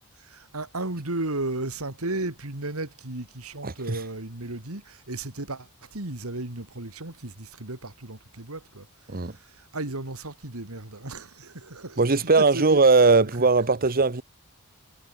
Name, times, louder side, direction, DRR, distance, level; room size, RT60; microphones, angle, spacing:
voice 1, 0.2-8.9 9.1-12.8 13.4-13.5, right 2 dB, 75° right, 2.9 m, -34 dB
voice 2, 3.6-4.0 9.1-9.3 12.0-14.2, right 3 dB, 45° right, 1.3 m, -19 dB
head